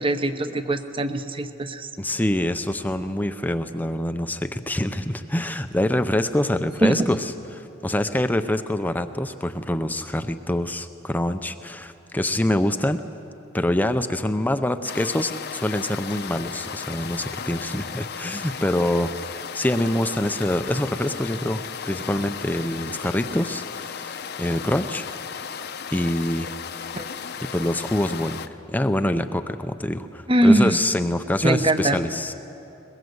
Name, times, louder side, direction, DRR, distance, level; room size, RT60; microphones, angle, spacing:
voice 1, 0.0-1.9 6.8-7.1 26.9-27.1 30.3-30.8 31.4-32.0, right 1 dB, 25° right, 9 dB, 0.9 m, -21 dB
voice 2, 2.0-13.0 13.5-19.1 19.5-25.1 25.9-26.5 27.5-28.4 28.7-32.3, left 1 dB, 10° left, 9 dB, 0.5 m, -25 dB
sound 1, 14.8-28.5, left 7 dB, 55° left, 0.8 m, -35 dB
21.5 x 21.5 x 7.9 m, 2.9 s
head